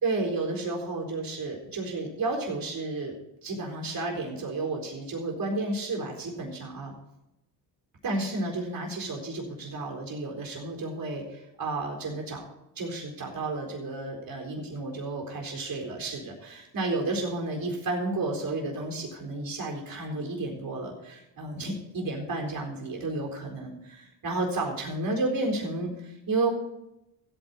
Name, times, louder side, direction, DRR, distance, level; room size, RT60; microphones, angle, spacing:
voice 1, 0.0-3.2 3.4-6.9 8.0-12.4 12.8-26.5, right 2 dB, 55° right, 1 dB, 4.2 m, -32 dB
15.0 x 9.1 x 4.4 m, 0.88 s
cardioid pair, 85°, 42 cm